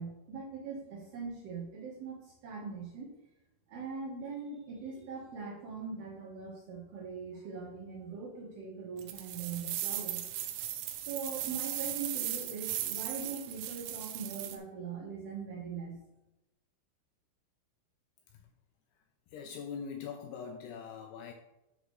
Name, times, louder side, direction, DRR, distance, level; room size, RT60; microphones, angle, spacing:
voice 1, 0.0-3.1 3.7-10.3 11.1-16.0, right 5 dB, 65° right, -4 dB, 2.5 m, -41 dB
sound 1, 9.0-14.6, right 12 dB, 80° right, 2.8 m, -37 dB
voice 2, 19.3-21.3, left 6 dB, 80° left, 3 dB, 2.7 m, -42 dB
8.1 x 3.0 x 6.2 m, 0.91 s
omnidirectional pair, 5.8 m